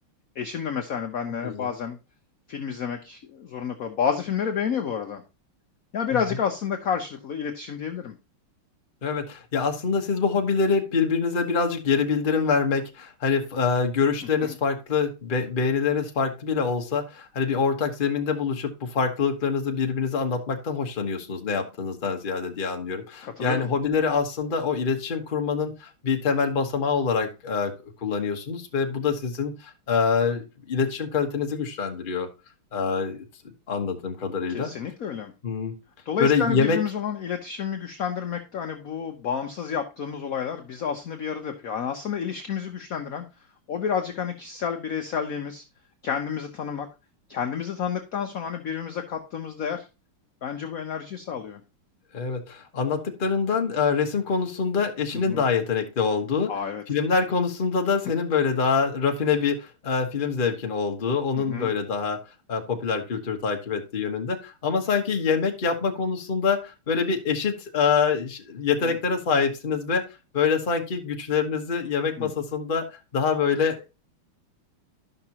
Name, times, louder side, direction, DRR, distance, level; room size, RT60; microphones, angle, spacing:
voice 1, 0.3-2.0 2.5-5.2 5.9-8.1 14.4-14.5 23.2-23.7 34.5-35.3 36.1-43.2 43.7-45.6 46.0-46.9 47.3-49.9 50.4-51.6 55.1-55.4 56.5-56.8 61.3-61.7 68.8-68.9 72.2-72.3, left 7 dB, 60° left, 5 dB, 0.9 m, -30 dB
voice 2, 9.0-27.7 28.0-32.3 32.7-33.3 33.7-34.7 35.4-35.7 36.2-36.8 52.1-56.5 56.9-62.2 62.5-70.1 70.3-73.9, left 5 dB, 35° left, 3 dB, 1.0 m, -25 dB
12.0 x 5.9 x 2.9 m, 0.29 s
omnidirectional pair, 2.4 m